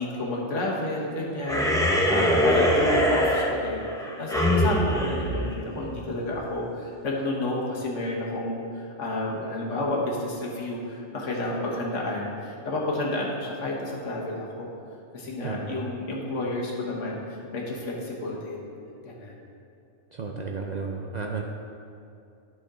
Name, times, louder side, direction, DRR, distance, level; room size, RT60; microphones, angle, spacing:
voice 1, 0.0-3.9 4.2-14.7 15.1-17.2 17.5-18.7 19.0-19.4, left 2 dB, 80° left, -3 dB, 1.7 m, -30 dB
sound 1, 1.5-6.2, equal, 5° left, 0.7 m, -23 dB
voice 2, 15.4-15.8 20.1-21.4, right 4 dB, 55° right, 1 dB, 0.5 m, -33 dB
10.5 x 6.1 x 3.8 m, 2.6 s
omnidirectional pair, 1.2 m